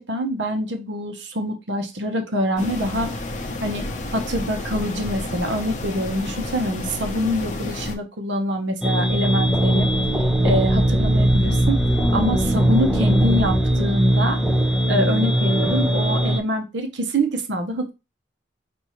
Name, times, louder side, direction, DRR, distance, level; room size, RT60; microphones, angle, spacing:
voice 1, 0.0-3.1 3.6-3.8 4.1-9.9 10.4-11.8 12.1-14.4 14.9-17.9, equal, 75° right, 5 dB, 0.9 m, -25 dB
sound 1, 2.6-8.0, left 2 dB, 45° left, 0.7 m, -30 dB
sound 2, 8.8-16.4, right 1 dB, 5° right, 0.5 m, -20 dB
sound 3, 9.0-13.8, right 1 dB, 55° right, 0.6 m, -29 dB
5.6 x 2.6 x 3.0 m, 0.26 s
head